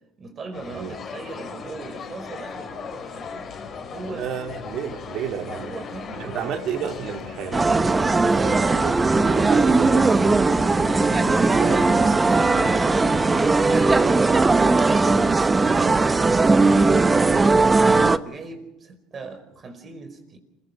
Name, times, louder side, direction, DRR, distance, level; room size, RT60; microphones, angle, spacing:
voice 1, 0.2-3.5 3.9-4.3 5.6-7.0 8.3-10.1 11.2-13.0 13.5-14.9 15.3-20.4, right 3 dB, 35° right, 4.7 m, -39 dB
sound 1, 0.5-15.0, left 5 dB, 40° left, 3.9 m, -38 dB
sound 2, 2.2-14.0, left 7 dB, 90° left, 2.8 m, -43 dB
voice 2, 4.1-5.7 6.1-7.7 8.3-10.1 11.4-11.8 15.7-16.0, right 8 dB, 60° right, 2.4 m, -32 dB
sound 3, 7.5-18.2, right 3 dB, 20° right, 0.9 m, -18 dB
27.5 x 16.5 x 6.3 m
supercardioid pair, 90°, 0 cm